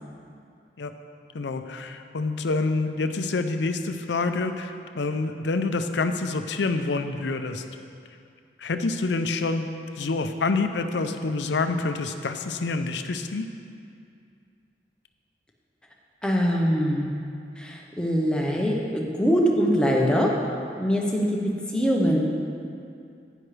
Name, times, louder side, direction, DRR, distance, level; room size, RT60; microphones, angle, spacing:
voice 1, 1.3-7.6 8.6-9.7 10.0-13.5, left 3 dB, 85° left, 8 dB, 0.5 m, -27 dB
voice 2, 16.2-17.1 17.6-20.3 20.8-21.3 21.7-22.3, equal, 5° left, -2 dB, 0.9 m, -23 dB
10.5 x 10.0 x 3.3 m, 2.4 s
head